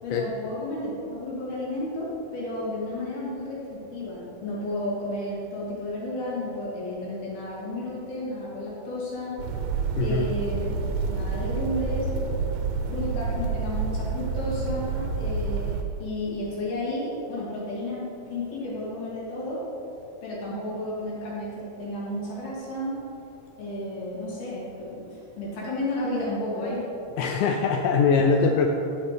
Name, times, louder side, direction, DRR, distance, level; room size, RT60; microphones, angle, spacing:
voice 1, 0.0-9.4 10.0-10.8 11.1-12.1 12.9-19.6 20.2-23.0 23.6-26.9, left 1 dB, 70° left, -7 dB, 4.4 m, -32 dB
sound 1, 9.4-15.8, right 4 dB, 80° right, 2.2 m, -28 dB
voice 2, 10.0-10.3 27.2-28.7, left 5 dB, 85° left, 3 dB, 2.0 m, -22 dB
10.5 x 8.7 x 3.3 m, 2.7 s
omnidirectional pair, 4.6 m